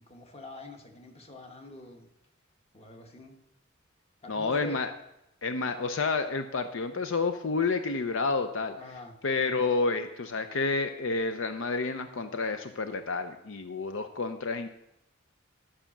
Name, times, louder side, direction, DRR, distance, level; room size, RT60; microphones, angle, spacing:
voice 1, 0.0-2.1 2.7-3.4 4.2-4.8 8.8-9.1, left 2 dB, 30° left, 4 dB, 1.3 m, -45 dB
voice 2, 4.3-4.9 5.4-8.8 9.2-14.7, left 4 dB, 70° left, 8 dB, 0.6 m, -29 dB
11.5 x 5.0 x 7.1 m, 0.84 s
head